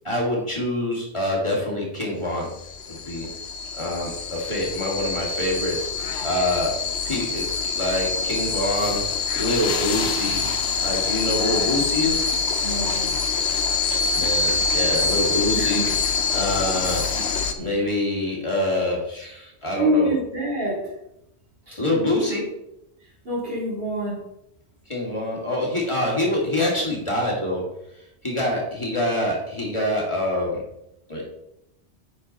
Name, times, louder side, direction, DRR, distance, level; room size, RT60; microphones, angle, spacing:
voice 1, 0.0-2.5 2.9-3.3 3.7-5.9 6.2-6.7 7.0-9.0 9.4-10.4 10.8-12.3 13.9-15.8 16.3-17.0 17.6-20.2 21.8-22.4 24.9-27.6 28.2-30.5 31.1-31.2, left 1 dB, 25° left, -3 dB, 2.3 m, -25 dB
sound 1, 2.5-17.5, left 5 dB, 80° left, 1.1 m, -25 dB
voice 2, 12.6-13.1 15.5-15.9 17.6-17.8 19.7-20.9 21.7-21.8 23.3-24.3, right 1 dB, 60° right, -5 dB, 3.4 m, -26 dB
8.7 x 6.1 x 4.1 m, 0.82 s
omnidirectional pair, 1.1 m